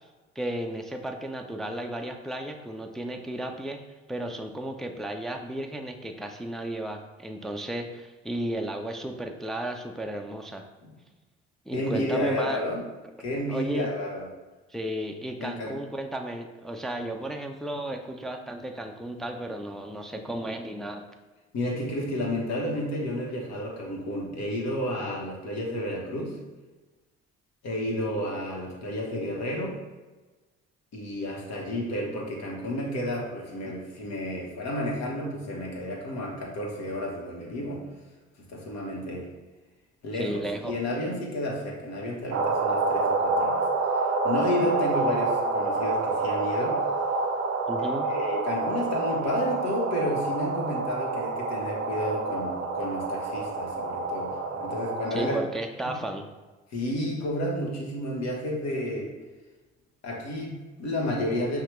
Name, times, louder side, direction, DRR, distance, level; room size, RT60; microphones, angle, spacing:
voice 1, 0.4-3.8 4.1-10.6 11.7-12.6 13.5-13.9 14.7-21.0 33.6-33.7 40.1-40.8 47.7-48.1 55.1-56.3, right 1 dB, ahead, 3 dB, 0.4 m, -34 dB
voice 2, 11.7-12.8 13.2-14.3 15.4-15.7 21.5-26.4 27.6-29.8 30.9-37.8 38.5-39.3 40.0-43.6 43.9-46.8 47.8-55.4 55.9-56.0 56.7-59.1 60.0-61.6, left 1 dB, 55° left, -1 dB, 1.3 m, -31 dB
sound 1, 42.3-55.3, right 3 dB, 40° right, 0.6 m, -28 dB
5.6 x 2.3 x 3.1 m, 1.2 s
hypercardioid pair, 60°, 32 cm